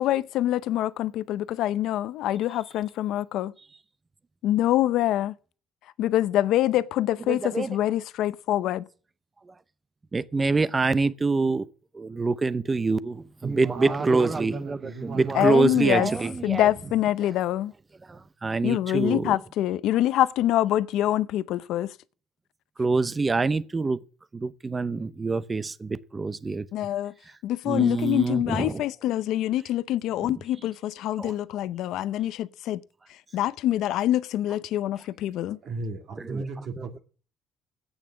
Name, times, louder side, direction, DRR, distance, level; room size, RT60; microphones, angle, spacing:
voice 1, 0.0-3.5 4.4-5.3 6.0-8.8 15.3-16.1 16.4-17.7 18.6-21.9 26.7-27.1 27.4-32.8 33.1-35.6, left 13 dB, 75° left, 0.6 m, -25 dB
voice 2, 7.3-7.7 10.1-11.6 11.9-16.7 17.2-17.3 18.4-19.4 22.8-24.0 24.3-26.7 27.7-28.8 30.2-30.3 31.2-31.3 36.2-36.9, right 3 dB, 20° right, 0.7 m, -26 dB
voice 3, 13.4-16.1 16.4-16.6 35.6-37.0, right 3 dB, 55° right, 2.3 m, -37 dB
14.0 x 9.0 x 7.4 m
cardioid pair, 140°, 0 cm